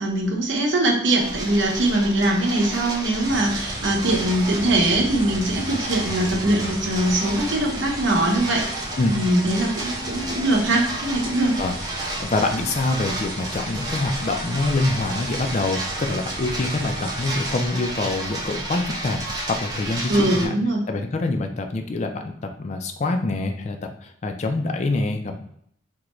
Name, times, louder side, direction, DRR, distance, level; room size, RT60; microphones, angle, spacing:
voice 1, 0.0-11.6 20.1-20.8, right 1 dB, 80° right, -1 dB, 0.8 m, -22 dB
sound 1, 1.2-20.5, right 1 dB, 20° right, 0.6 m, -32 dB
sound 2, 3.2-17.5, right 1 dB, 50° right, 0.9 m, -38 dB
voice 2, 12.2-20.6 20.9-25.4, left 2 dB, 35° left, 5 dB, 0.4 m, -25 dB
3.7 x 2.2 x 3.0 m, 0.68 s
head